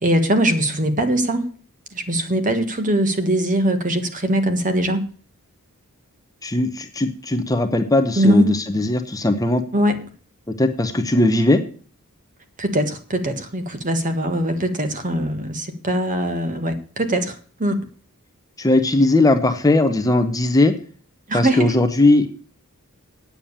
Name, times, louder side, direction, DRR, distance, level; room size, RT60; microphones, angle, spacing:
voice 1, 0.0-1.5 1.9-5.1 8.2-8.5 9.7-10.0 12.6-17.3 17.6-17.9 21.3-21.7, right 1 dB, 35° right, 7 dB, 1.5 m, -21 dB
voice 2, 6.4-9.6 10.5-11.6 18.6-20.7 21.3-22.3, left 2 dB, 15° left, 8 dB, 0.8 m, -18 dB
9.0 x 7.2 x 8.6 m, 0.43 s
head